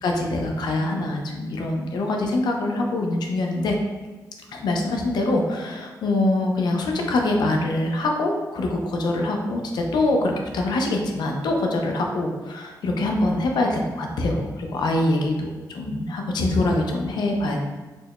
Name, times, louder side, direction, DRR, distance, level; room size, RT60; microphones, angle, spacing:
voice 1, 0.0-3.8 4.5-17.6, left 2 dB, 80° left, 1 dB, 0.6 m, -24 dB
4.3 x 2.2 x 2.9 m, 1.3 s
cardioid pair, 90°, 7 cm